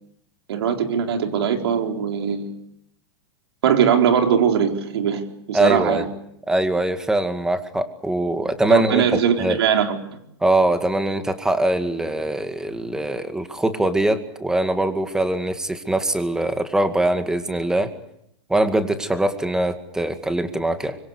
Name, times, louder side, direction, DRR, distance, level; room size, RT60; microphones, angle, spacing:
voice 1, 0.5-2.6 3.6-5.2 5.5-6.0 8.7-10.2, right 8 dB, 75° right, 4 dB, 4.3 m, -20 dB
voice 2, 5.5-6.1 6.5-9.1 9.4-9.6 10.4-17.9 18.5-21.0, right 1 dB, 5° right, 8 dB, 2.1 m, -22 dB
25.5 x 23.0 x 8.3 m, 0.78 s
hypercardioid pair, 140°, 14 cm